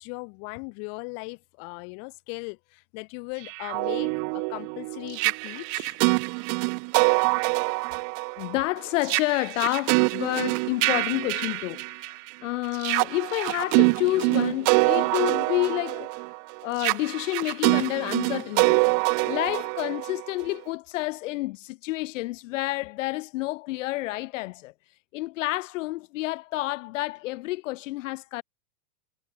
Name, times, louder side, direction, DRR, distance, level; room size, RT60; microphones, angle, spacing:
voice 1, 0.0-6.0, left 40 dB or more, 35° left, 1.2 m, -38 dB
sound 1, 3.4-12.3 12.7-20.6, right 40 dB or more, 35° right, 1.3 m, -25 dB
voice 2, 8.4-16.3 16.6-18.8 19.2-24.7 25.1-28.4, left 19 dB, 50° left, 1.0 m, -29 dB
supercardioid pair, 160°, 48 cm